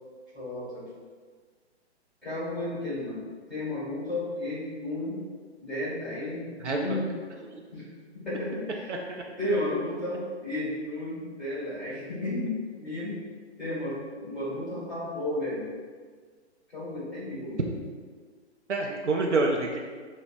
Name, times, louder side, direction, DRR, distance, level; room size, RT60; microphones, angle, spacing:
voice 1, 0.3-0.8 2.2-3.2 3.5-5.2 5.6-7.0 7.7-7.9 8.1-8.9 9.4-12.5 12.8-13.2 13.6-15.6 16.7-17.7, left 1 dB, ahead, -10 dB, 1.4 m, -33 dB
voice 2, 6.6-7.0 8.9-9.2 18.7-19.8, right 3 dB, 90° right, 1 dB, 0.5 m, -27 dB
5.5 x 2.0 x 2.3 m, 1.6 s
figure-of-eight pair, 125°, 34 cm